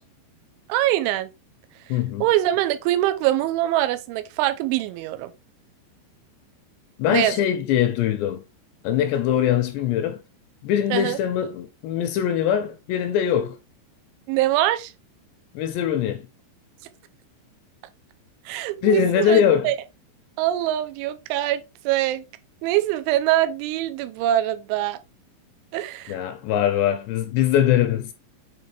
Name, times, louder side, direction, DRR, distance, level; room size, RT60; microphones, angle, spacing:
voice 1, 0.7-1.3 1.9-5.3 7.1-7.4 10.9-11.2 14.3-14.9 18.5-19.7 20.4-22.2 22.6-25.0 25.7-26.2, right 13 dB, 90° right, 3.1 m, -23 dB
voice 2, 1.9-2.2 7.0-8.4 8.8-10.2 10.6-13.6 15.6-16.2 18.8-19.7 26.1-28.1, left 10 dB, 80° left, 2.6 m, -22 dB
7.7 x 4.6 x 3.3 m
omnidirectional pair, 5.3 m